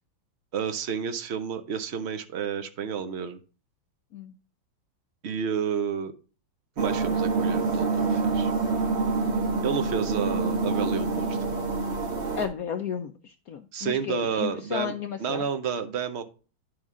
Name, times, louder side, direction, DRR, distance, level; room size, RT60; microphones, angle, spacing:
voice 1, 0.5-3.4 5.2-6.1 6.8-8.5 9.6-11.4 13.7-14.9 15.2-16.2, right 7 dB, 65° right, 9 dB, 0.6 m, -30 dB
sound 1, 6.8-12.5, right 4 dB, 35° right, 1.6 m, -26 dB
voice 2, 12.3-15.4, left 7 dB, 75° left, 7 dB, 0.8 m, -33 dB
10.5 x 6.3 x 3.6 m, 0.36 s
omnidirectional pair, 2.2 m